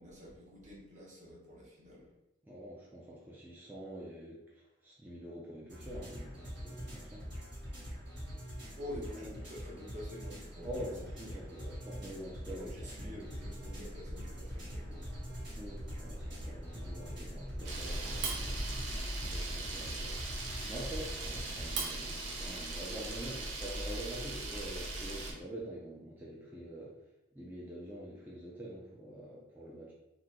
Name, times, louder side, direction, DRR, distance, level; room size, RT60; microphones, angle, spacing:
voice 1, 0.0-2.1 8.8-10.9 11.2-12.1 12.6-15.2, left 1 dB, 40° right, -5 dB, 0.9 m, -48 dB
voice 2, 2.4-7.3 9.2-9.4 10.6-13.3 15.6-18.2 19.1-27.0 27.3-29.9, right 1 dB, 10° right, -6 dB, 0.4 m, -46 dB
sound 1, 5.7-21.8, equal, 65° right, 1.5 m, -43 dB
Camera, 17.6-25.3, right 2 dB, 80° right, 0.7 m, -38 dB
2.9 x 2.2 x 3.6 m, 0.91 s
head